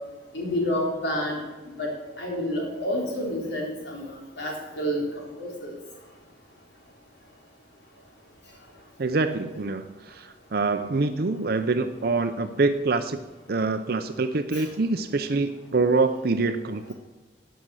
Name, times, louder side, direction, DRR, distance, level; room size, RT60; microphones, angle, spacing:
voice 1, 0.3-1.4 1.7-1.9 2.2-4.1 4.4-5.0 5.4-5.7 14.5-14.6, equal, 65° left, -1 dB, 3.7 m, -29 dB
voice 2, 9.0-13.2 13.5-16.9, right 3 dB, 55° right, 9 dB, 0.6 m, -25 dB
13.0 x 9.2 x 6.2 m, 1.2 s
head